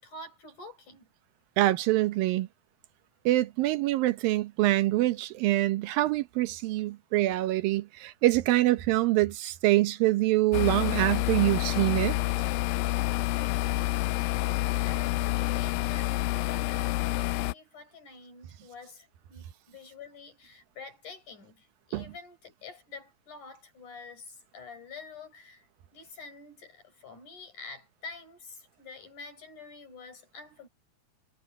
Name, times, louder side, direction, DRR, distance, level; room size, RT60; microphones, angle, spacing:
voice 1, 0.0-1.1 13.3-14.3 14.8-25.7 25.9-30.7, left 4 dB, 55° left, 7.7 m, -47 dB
voice 2, 1.6-2.5 3.3-12.2 21.9-22.1, right 17 dB, 75° right, 2.6 m, -25 dB
sound 1, 10.5-17.5, left 17 dB, 80° left, 2.1 m, -28 dB
omnidirectional pair, 4.3 m